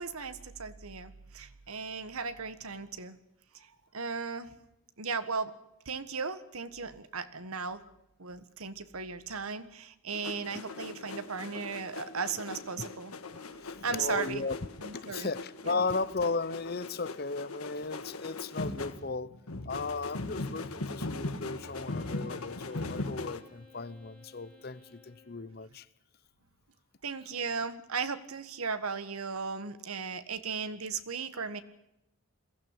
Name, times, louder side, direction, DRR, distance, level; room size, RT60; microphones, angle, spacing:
voice 1, 0.0-3.1 3.5-3.7 3.9-4.5 5.0-5.5 5.8-7.8 8.2-13.1 13.8-14.5 14.8-15.3 15.6-15.8 27.0-31.6, right 5 dB, 80° right, 1.5 m, -36 dB
sound 1, 10.1-23.4, left 2 dB, 85° left, 1.6 m, -40 dB
voice 2, 13.6-14.6 15.1-19.3 19.6-25.9, left 4 dB, 45° left, 0.7 m, -35 dB
Wind instrument woodwind instrument, 21.6-25.6, left 5 dB, 35° right, 7.0 m, -57 dB
22.5 x 15.5 x 8.9 m
head